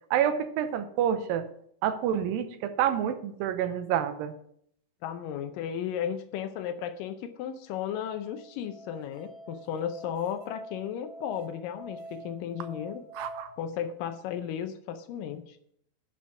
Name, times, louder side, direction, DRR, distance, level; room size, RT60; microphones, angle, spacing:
voice 1, 0.1-1.4 1.8-4.3 13.1-13.5, right 9 dB, 85° right, 10 dB, 2.5 m, -28 dB
voice 2, 5.0-13.0 13.6-15.6, left 9 dB, 80° left, 9 dB, 2.2 m, -34 dB
Musical instrument, 8.1-13.4, right 1 dB, 70° right, 4.8 m, -46 dB
10.0 x 6.1 x 5.7 m, 0.68 s
omnidirectional pair, 4.1 m